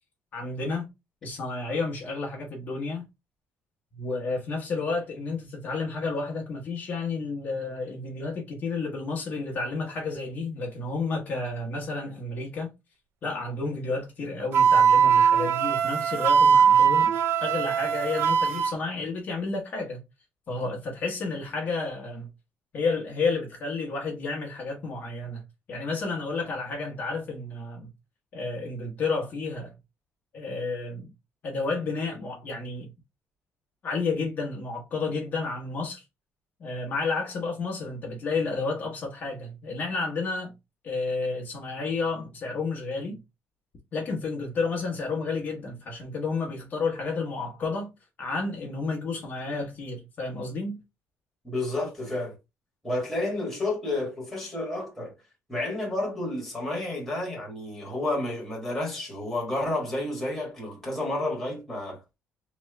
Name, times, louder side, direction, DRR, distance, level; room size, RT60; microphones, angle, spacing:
voice 1, 0.3-0.9 1.2-3.0 3.9-12.7 13.2-20.0 20.5-22.3 22.7-25.4 25.7-27.9 28.3-29.7 30.3-31.1 31.4-32.9 33.8-36.0 36.6-40.5 40.8-43.2 43.9-47.9 48.2-50.8, left 3 dB, 35° left, 1.0 m, -31 dB
Wind instrument woodwind instrument, 14.5-18.7, right 7 dB, 55° right, 0.4 m, -20 dB
voice 2, 51.4-52.3 52.8-55.1 55.5-62.0, left 2 dB, 5° left, 1.5 m, -30 dB
3.1 x 3.0 x 3.2 m
cardioid pair, 180°, 5 cm